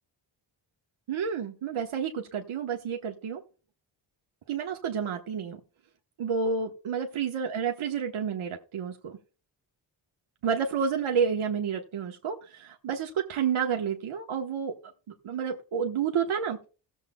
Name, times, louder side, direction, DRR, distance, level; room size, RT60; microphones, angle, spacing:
voice 1, 1.1-3.4 4.5-5.6 6.2-9.2 10.4-14.8 15.2-16.6, right 6 dB, 75° right, 2 dB, 1.2 m, -30 dB
18.0 x 7.4 x 2.2 m, 0.35 s
wide cardioid pair, 110°, 49 cm